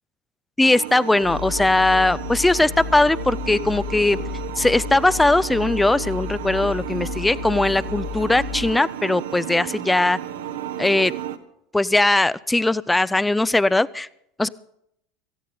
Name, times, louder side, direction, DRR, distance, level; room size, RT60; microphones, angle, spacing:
voice 1, 0.6-4.2 4.6-10.2 10.8-11.1 11.7-14.1 14.4-14.5, left 2 dB, 10° left, 20 dB, 0.4 m, -19 dB
sound 1, 0.6-11.4, right 11 dB, 70° right, 0.9 m, -33 dB
sound 2, 1.2-8.7, left 10 dB, 50° left, 3.2 m, -33 dB
18.0 x 15.0 x 3.9 m, 0.75 s
figure-of-eight pair, 80°, 0 cm